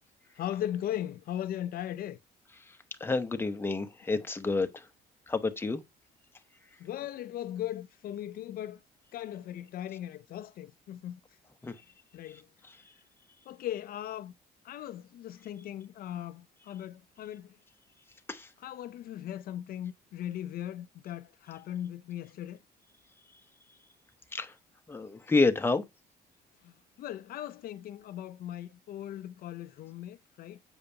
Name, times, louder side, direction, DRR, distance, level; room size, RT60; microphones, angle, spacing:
voice 1, 0.3-2.2 6.8-8.8 9.1-11.2 12.1-12.5 13.5-14.3 14.6-17.6 18.6-22.6 26.6-30.6, left 11 dB, 60° left, 0.5 m, -38 dB
voice 2, 2.7-4.9 5.3-5.8 11.6-11.7 18.3-18.5 24.3-24.5 24.9-25.8, left 3 dB, 15° left, 0.8 m, -29 dB
8.0 x 5.1 x 2.7 m
cardioid pair, 110°, 17 cm